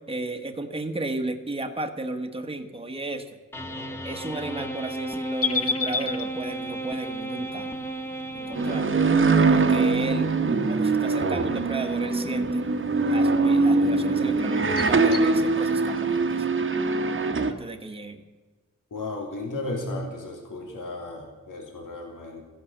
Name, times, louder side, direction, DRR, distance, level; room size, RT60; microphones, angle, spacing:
voice 1, 0.1-3.3 4.0-7.7 8.3-9.0 9.5-10.3 10.7-12.6 13.1-16.5 17.5-18.2, right 2 dB, 20° right, 5 dB, 1.3 m, -33 dB
sound 1, 3.5-9.3, right 2 dB, 10° left, 1.5 m, -34 dB
sound 2, 5.4-15.3, left 5 dB, 50° left, 1.0 m, -36 dB
sound 3, 8.6-17.5, right 3 dB, 40° right, 1.2 m, -22 dB
voice 2, 18.9-22.4, left 2 dB, 80° left, 2 dB, 3.0 m, -34 dB
15.0 x 11.0 x 7.3 m, 1.3 s
wide cardioid pair, 130°, 31 cm